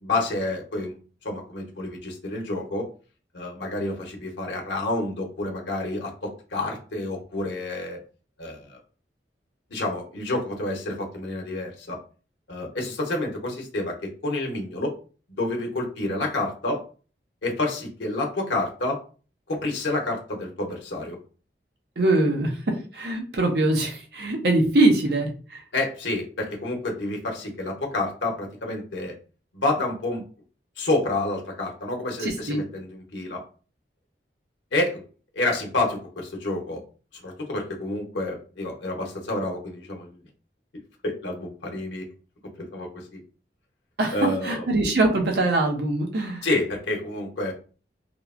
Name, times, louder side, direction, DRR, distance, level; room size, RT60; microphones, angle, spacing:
voice 1, 0.0-2.9 3.3-8.0 8.4-8.8 9.7-12.0 12.5-14.9 15.4-16.8 17.4-19.0 19.5-21.2 25.7-29.1 29.5-30.2 30.8-33.4 34.7-35.0 35.3-36.8 37.1-40.2 41.0-42.1 42.6-43.2 44.1-44.7 46.4-47.5, left 2 dB, 90° left, 1 dB, 0.7 m, -29 dB
voice 2, 22.0-25.6 32.2-32.6 44.0-44.2 44.4-46.5, right 2 dB, 65° right, 2 dB, 0.6 m, -23 dB
2.8 x 2.0 x 2.4 m, 0.38 s
head